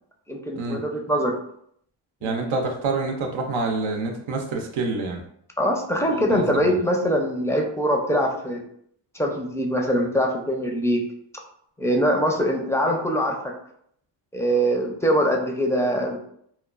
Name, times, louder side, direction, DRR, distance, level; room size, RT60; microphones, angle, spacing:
voice 1, 0.3-1.4 2.2-2.5 5.6-8.6 9.1-11.0 11.8-13.5 14.3-16.2, equal, 5° left, 1 dB, 0.4 m, -23 dB
voice 2, 2.2-5.2 6.1-6.7, right 3 dB, 80° right, 2 dB, 0.6 m, -27 dB
2.9 x 2.1 x 2.4 m, 0.69 s
cardioid pair, 70°, 46 cm